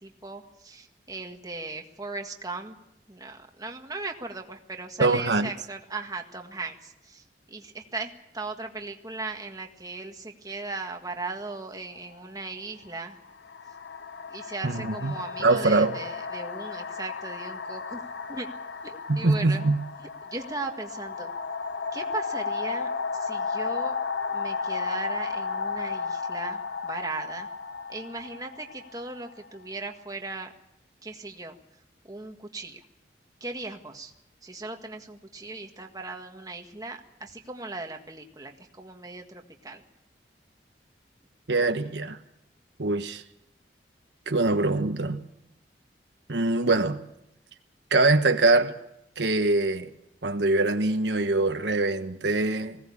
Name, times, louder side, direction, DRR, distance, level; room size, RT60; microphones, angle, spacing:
voice 1, 0.0-2.8 3.1-13.2 14.3-18.5 18.8-19.6 20.2-21.3 21.9-23.9 24.3-27.5 27.9-30.5 31.0-31.6 32.0-32.8 33.4-34.1 34.4-39.8, right 3 dB, 20° right, 1.7 m, -38 dB
voice 2, 5.0-5.5 14.6-16.0 19.1-19.8 41.5-42.2 42.8-43.2 44.3-45.2 46.3-47.0 47.9-48.7 49.2-49.9 50.2-52.8, right 2 dB, 70° right, 1.3 m, -23 dB
sound 1, 12.0-12.1 13.1-29.7, left 4 dB, 70° left, 0.7 m, -34 dB
20.5 x 17.5 x 8.7 m
head